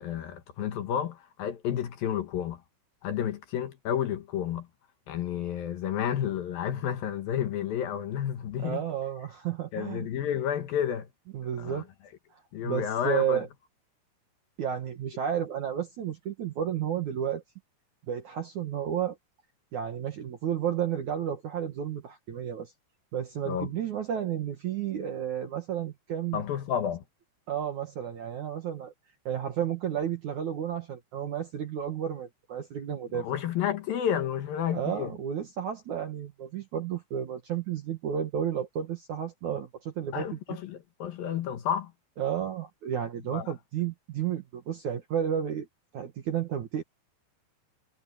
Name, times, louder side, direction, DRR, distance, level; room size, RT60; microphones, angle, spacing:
voice 1, 0.0-2.6 3.0-4.7 5.1-8.8 9.7-11.1 11.6-11.8 12.5-13.4 23.5-23.7 26.3-27.0 33.1-35.1 40.1-41.9 43.3-43.5, left 9 dB, 65° left, 2.7 m, -31 dB
voice 2, 8.6-10.1 11.3-11.9 12.3-13.5 14.6-17.4 18.1-19.2 19.7-22.7 23.1-26.4 27.5-28.9 29.3-33.3 34.7-40.6 42.2-45.7 45.9-46.8, right 9 dB, 55° right, 2.3 m, -32 dB
omnidirectional pair, 5.0 m